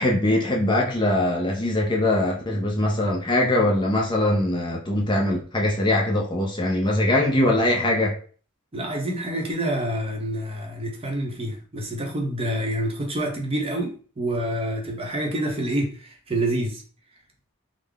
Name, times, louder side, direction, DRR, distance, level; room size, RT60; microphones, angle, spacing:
voice 1, 0.0-8.2, left 1 dB, 20° left, 0.6 m, -22 dB
voice 2, 8.7-16.8, right 1 dB, 25° right, 0.8 m, -27 dB
3.7 x 2.1 x 3.4 m
head